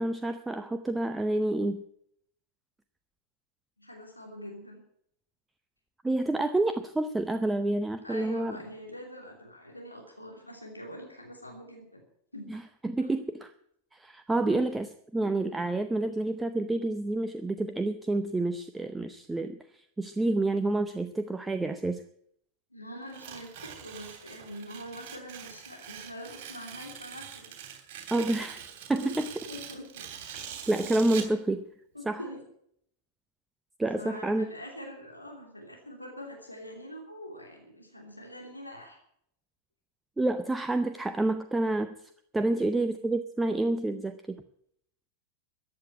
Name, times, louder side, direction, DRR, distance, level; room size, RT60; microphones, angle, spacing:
voice 1, 0.0-1.8 6.0-8.6 12.5-13.5 13.9-14.9 15.1-22.0 28.1-28.6 28.9-29.3 30.3-31.6 32.1-32.2 33.8-34.5 40.2-42.0 42.3-44.4, right 2 dB, 10° right, 10 dB, 0.7 m, -29 dB
voice 2, 3.8-4.8 8.0-12.0 12.3-12.5 14.4-14.6 22.7-27.6 28.1-28.5 29.0-30.1 30.8-30.9 31.9-32.4 34.0-39.0 42.5-42.6, equal, 85° left, 1 dB, 3.0 m, -44 dB
Tearing, 23.1-31.4, right 9 dB, 50° right, 3.2 m, -43 dB
14.0 x 9.2 x 8.9 m, 0.71 s
figure-of-eight pair, 90°, 0 cm